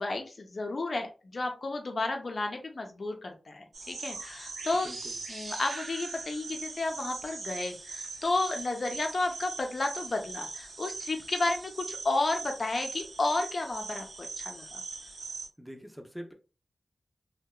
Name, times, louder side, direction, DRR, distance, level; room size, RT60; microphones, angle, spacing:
voice 1, 0.0-4.9 5.3-14.8, left 2 dB, 65° left, 0.5 m, -32 dB
sound 1, 3.7-15.5, right 4 dB, 85° right, 0.6 m, -41 dB
voice 2, 4.7-5.2 15.6-16.3, equal, ahead, 0.6 m, -44 dB
2.7 x 2.2 x 2.2 m
cardioid pair, 40°, 0 cm